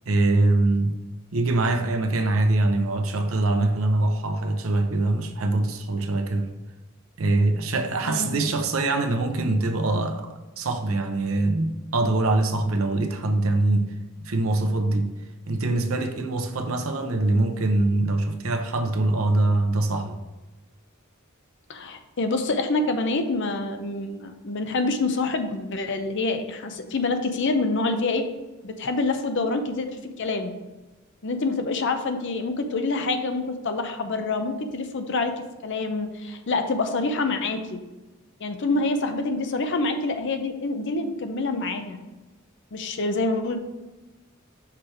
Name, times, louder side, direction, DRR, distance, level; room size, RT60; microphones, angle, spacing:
voice 1, 0.1-1.0 1.3-6.5 7.2-13.9 14.2-15.1 15.5-20.2, right 2 dB, 80° right, 0.8 m, -23 dB
voice 2, 8.1-8.6 21.7-28.2 28.6-30.5 31.2-35.3 35.6-37.8 38.4-42.0 42.7-43.6, left 3 dB, 60° left, 0.7 m, -26 dB
5.9 x 3.3 x 5.8 m
head